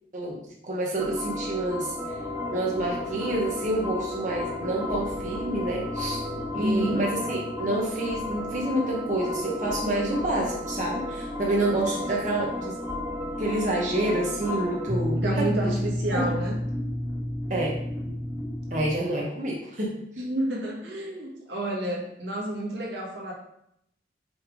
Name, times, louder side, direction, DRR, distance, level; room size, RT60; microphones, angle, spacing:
voice 1, 0.1-2.2 2.5-6.3 6.5-12.7 13.4-15.7 16.1-16.3 17.5-17.8 18.7-20.0, right 1 dB, 45° right, -2 dB, 1.1 m, -28 dB
sound 1, 1.0-19.0, left 1 dB, 15° right, 1.6 m, -32 dB
sound 2, 2.1-12.6, left 4 dB, 85° left, 0.6 m, -43 dB
voice 2, 6.5-7.0 15.2-16.6 20.2-23.3, right 1 dB, 90° right, -2 dB, 1.8 m, -29 dB
6.2 x 3.5 x 4.9 m, 0.75 s
head